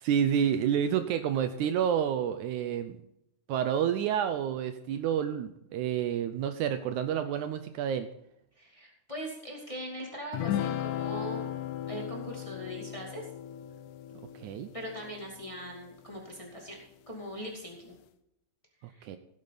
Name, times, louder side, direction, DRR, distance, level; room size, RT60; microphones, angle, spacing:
voice 1, 0.0-3.0 3.5-8.1 14.4-14.7 18.8-19.2, right 9 dB, 75° right, 10 dB, 2.0 m, -29 dB
voice 2, 8.6-11.5 11.9-13.3 14.7-18.0 18.8-19.1, equal, 10° left, -1 dB, 1.9 m, -41 dB
sound 1, 10.3-16.0, left 11 dB, 75° left, 2.0 m, -36 dB
16.0 x 8.8 x 4.0 m, 0.79 s
omnidirectional pair, 3.7 m